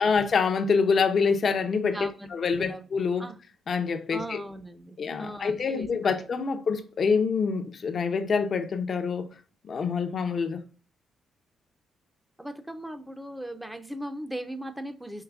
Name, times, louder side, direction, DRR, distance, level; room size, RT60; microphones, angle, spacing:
voice 1, 0.0-2.0 2.3-3.3 3.7-4.4 5.0-9.3 9.6-10.6, left 5 dB, 55° left, 0.6 m, -26 dB
voice 2, 1.9-2.9 3.2-3.4 4.1-6.3 12.4-15.2, right 1 dB, 10° right, 0.5 m, -38 dB
4.7 x 3.0 x 2.4 m
cardioid pair, 70°, 0 cm